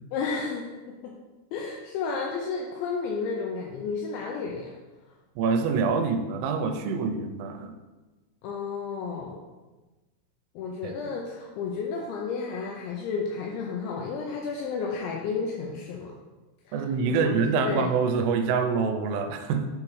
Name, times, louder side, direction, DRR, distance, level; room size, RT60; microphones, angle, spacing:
voice 1, 0.1-1.1 1.5-4.7 8.4-9.4 10.6-16.1 16.7-16.8 17.1-17.4 17.6-17.9, left 5 dB, 85° left, 0 dB, 2.6 m, -32 dB
voice 2, 5.4-7.8 10.8-10.9 16.7-19.7, right 5 dB, 85° right, 7 dB, 3.1 m, -26 dB
7.2 x 4.8 x 3.1 m, 1.2 s
omnidirectional pair, 5.8 m